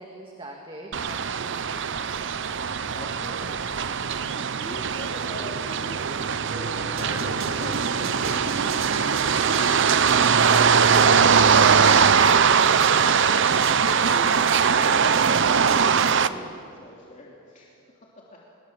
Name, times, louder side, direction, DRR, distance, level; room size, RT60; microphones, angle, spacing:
voice 1, 0.0-2.1 16.3-16.6, right 1 dB, 25° right, 1 dB, 2.1 m, -44 dB
sound 1, 0.9-16.3, right 6 dB, 60° right, 0.7 m, -21 dB
voice 2, 2.9-3.7 3.9-8.0 8.6-10.0 10.3-14.6 15.6-18.4, left 1 dB, 40° left, -4 dB, 3.0 m, -42 dB
sound 2, 6.9-16.1, right 4 dB, 80° right, 1.9 m, -33 dB
25.5 x 22.5 x 7.4 m, 2.6 s
head